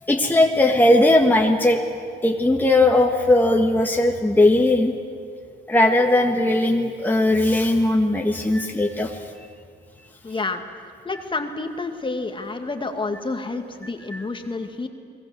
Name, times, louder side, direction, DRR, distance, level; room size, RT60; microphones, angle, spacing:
voice 1, 0.1-1.8 2.2-4.9 5.7-9.2 14.1-14.2, left 1 dB, 10° left, 1 dB, 1.9 m, -18 dB
voice 2, 10.2-10.6 11.0-14.9, left 3 dB, 25° left, 5 dB, 2.3 m, -29 dB
30.0 x 20.5 x 7.9 m, 2.2 s
cardioid pair, 90°, 20 cm